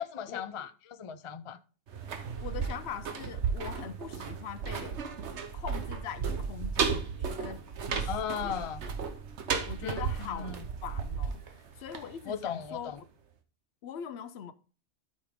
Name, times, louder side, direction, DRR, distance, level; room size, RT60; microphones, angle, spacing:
voice 1, 0.0-1.6 8.1-8.8 9.8-10.6 12.3-13.0, left 7 dB, 40° left, 0.5 m, -37 dB
sound 1, 1.9-12.7 13.0-13.1, right 6 dB, 75° right, 1.2 m, -34 dB
voice 2, 2.4-5.0 5.5-8.1 8.4-8.6 9.7-10.5 10.8-11.4 11.8-12.9 13.8-14.5, left 8 dB, 70° left, 0.9 m, -42 dB
12.5 x 5.3 x 3.6 m
omnidirectional pair, 1.2 m